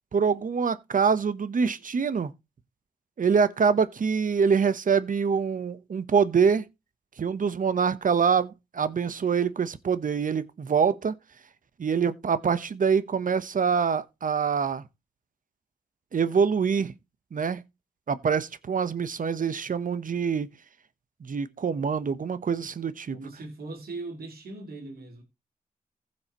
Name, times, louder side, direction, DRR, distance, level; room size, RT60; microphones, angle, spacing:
voice 1, 0.1-2.3 3.2-6.6 7.2-11.1 11.8-14.8 16.1-16.9 17.3-17.6 18.1-20.5 21.2-23.2, right 6 dB, 60° right, 1.0 m, -25 dB
voice 2, 23.1-25.2, right 3 dB, 85° right, 3.1 m, -39 dB
15.5 x 6.4 x 3.0 m
cardioid pair, 45°, 15 cm